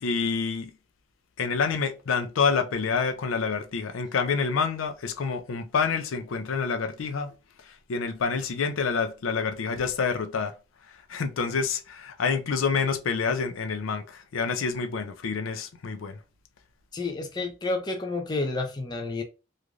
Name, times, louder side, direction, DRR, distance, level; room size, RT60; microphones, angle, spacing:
voice 1, 0.0-0.7 1.4-10.5 10.8-16.2, left 5 dB, 85° left, 0.4 m, -28 dB
voice 2, 16.9-19.2, left 3 dB, 20° left, 0.4 m, -30 dB
3.1 x 2.5 x 2.3 m
head